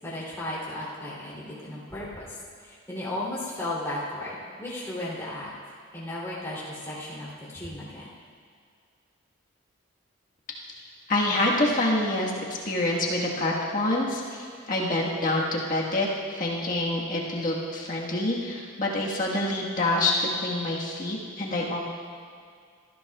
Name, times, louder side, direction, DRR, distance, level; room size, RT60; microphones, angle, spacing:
voice 1, 0.0-5.5 5.9-8.1, left 1 dB, 15° left, -9 dB, 3.0 m, -35 dB
voice 2, 11.1-20.1 20.4-21.8, left 2 dB, 40° left, -3 dB, 1.5 m, -27 dB
18.0 x 14.0 x 2.4 m, 2.1 s
head